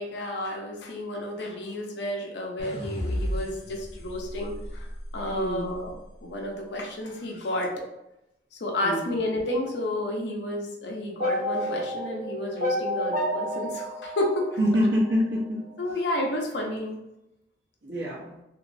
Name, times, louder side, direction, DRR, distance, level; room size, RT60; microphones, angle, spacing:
voice 1, 0.0-5.9 6.2-7.7 8.5-14.5 15.8-17.0, left 1 dB, 70° left, 1 dB, 0.6 m, -31 dB
sound 1, 2.6-5.8, equal, 40° left, 0.8 m, -34 dB
voice 2, 5.3-5.8 8.8-9.1 14.6-15.6 17.8-18.4, equal, 75° right, -4 dB, 0.8 m, -26 dB
sound 2, 11.2-15.4, equal, 50° right, 0.5 m, -30 dB
3.0 x 2.6 x 2.6 m, 0.87 s
head